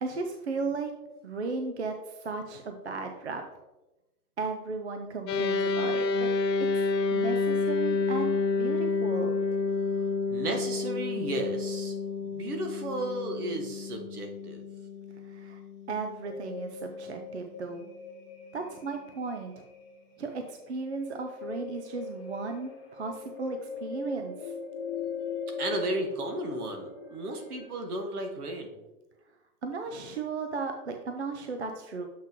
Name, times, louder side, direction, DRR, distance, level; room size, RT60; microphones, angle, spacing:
voice 1, 0.0-0.9 1.2-3.4 4.4-6.3 6.8-8.3 8.6-9.4 15.2-15.6 15.9-17.9 18.5-19.6 20.2-24.5 29.6-32.1, right 4 dB, 45° right, 5 dB, 0.5 m, -35 dB
sound 1, 5.3-16.8, left 4 dB, 85° left, 0.7 m, -29 dB
voice 2, 10.3-14.6 25.6-28.8, right 2 dB, 65° right, 4 dB, 1.5 m, -34 dB
sound 2, 16.2-27.7, left 5 dB, 30° left, 1.8 m, -40 dB
7.4 x 5.9 x 3.0 m, 1.0 s
hypercardioid pair, 180°, 49 cm